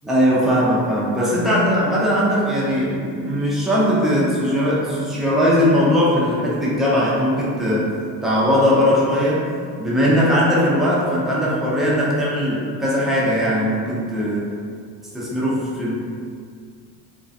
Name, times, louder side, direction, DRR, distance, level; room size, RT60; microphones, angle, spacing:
voice 1, 0.0-7.9 8.2-9.5 9.8-14.5 15.1-15.9, equal, ahead, -7 dB, 0.4 m, -19 dB
2.4 x 2.1 x 2.5 m, 2.2 s
supercardioid pair, 90°, 49 cm